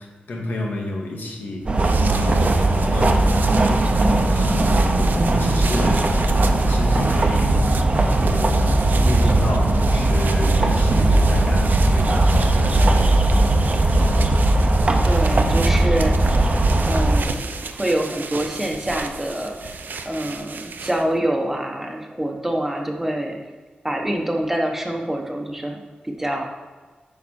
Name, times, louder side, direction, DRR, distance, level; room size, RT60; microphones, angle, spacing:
voice 1, 0.0-1.7 2.0-13.3 13.7-14.0, left 2 dB, 80° left, -1 dB, 1.8 m, -30 dB
sound 1, 1.6-21.2, right 4 dB, 75° right, 0.6 m, -34 dB
sound 2, 1.7-17.2, right 2 dB, 35° right, 0.8 m, -18 dB
voice 2, 15.0-16.3 16.9-19.8 20.0-23.4 23.8-26.4, right 1 dB, 10° right, 1 dB, 1.1 m, -26 dB
9.2 x 5.8 x 4.3 m, 1.4 s
wide cardioid pair, 145°, 3 cm